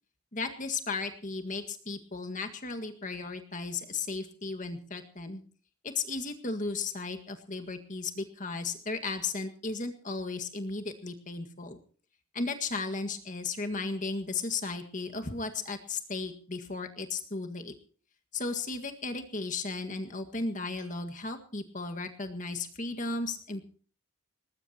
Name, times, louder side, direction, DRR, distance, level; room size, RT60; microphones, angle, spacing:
voice 1, 0.3-5.4 5.8-11.8 12.3-17.7 18.3-23.7, left 3 dB, 35° left, 6 dB, 1.9 m, -35 dB
20.5 x 19.5 x 3.0 m, 0.42 s
head